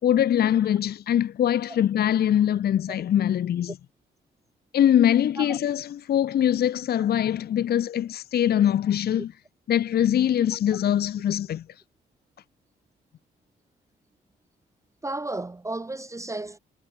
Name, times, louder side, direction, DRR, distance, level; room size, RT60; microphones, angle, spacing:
voice 1, 0.0-3.7 4.7-9.3 9.7-11.6, left 10 dB, 55° left, 0.7 m, -23 dB
voice 2, 15.0-16.6, right 2 dB, 15° right, 0.8 m, -33 dB
cardioid pair, 90°, 20 cm